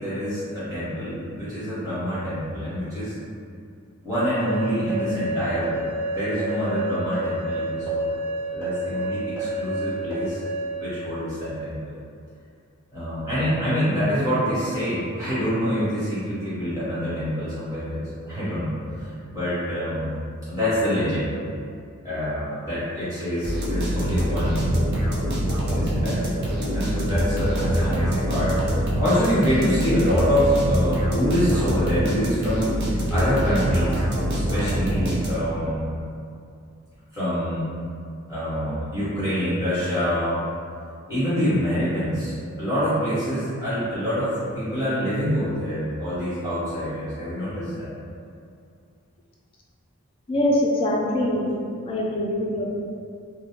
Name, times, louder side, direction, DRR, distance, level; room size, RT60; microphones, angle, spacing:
voice 1, 0.0-3.1 4.0-8.2 8.5-10.4 10.8-12.0 12.9-20.2 20.5-21.3 22.0-24.7 25.6-34.0 34.3-35.9 37.1-37.7 38.3-40.5 41.1-47.9, equal, 15° right, -14 dB, 1.1 m, -26 dB
sound 1, 4.1-10.7, right 1 dB, 85° right, 0.7 m, -28 dB
sound 2, 23.4-35.6, equal, 50° right, 0.5 m, -24 dB
voice 2, 50.3-51.5 51.8-52.8, left 1 dB, 25° left, -3 dB, 0.3 m, -23 dB
2.3 x 2.1 x 2.8 m, 2.4 s
head